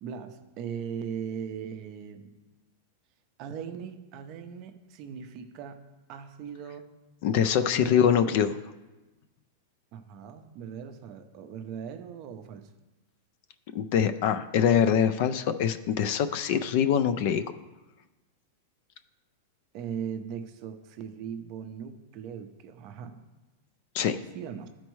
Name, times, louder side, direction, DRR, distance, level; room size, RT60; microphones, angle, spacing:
voice 1, 0.0-2.3 3.4-5.8 6.1-6.9 7.7-8.0 9.9-12.7 19.7-23.2 24.3-24.7, right 7 dB, 35° right, 8 dB, 0.5 m, -39 dB
voice 2, 7.2-8.6 13.7-17.5 23.9-24.2, left 8 dB, 40° left, 12 dB, 0.3 m, -24 dB
12.5 x 4.3 x 3.1 m, 1.1 s
supercardioid pair, 170°, 0 cm